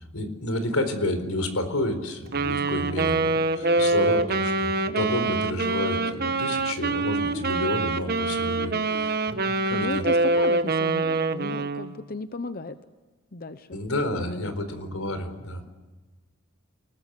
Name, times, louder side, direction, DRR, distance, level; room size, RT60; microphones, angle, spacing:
voice 1, 0.0-10.0 13.7-15.7, left 1 dB, 90° left, 9 dB, 4.3 m, -30 dB
Wind instrument woodwind instrument, 2.3-11.9, right 3 dB, 45° right, 1.2 m, -25 dB
sound 1, 2.4-3.0 3.6-4.2 4.9-5.6 6.0-6.7 7.3-8.0 8.6-9.1 9.8-10.4 11.0-11.7, left 1 dB, 25° left, 2.2 m, -44 dB
voice 2, 9.7-12.8 13.3-13.8 14.2-14.6, left 2 dB, 45° left, 10 dB, 0.8 m, -34 dB
29.0 x 20.0 x 8.3 m, 1.2 s
head